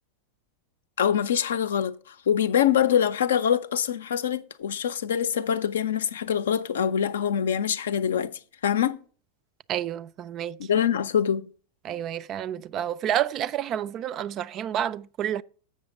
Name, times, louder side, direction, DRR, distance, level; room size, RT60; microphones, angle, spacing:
voice 1, 1.0-9.0 10.6-11.5, left 9 dB, 65° left, 0.5 m, -24 dB
voice 2, 9.7-10.6 11.8-15.4, right 10 dB, 35° right, 0.3 m, -29 dB
7.6 x 6.4 x 5.0 m
figure-of-eight pair, 90°, 0 cm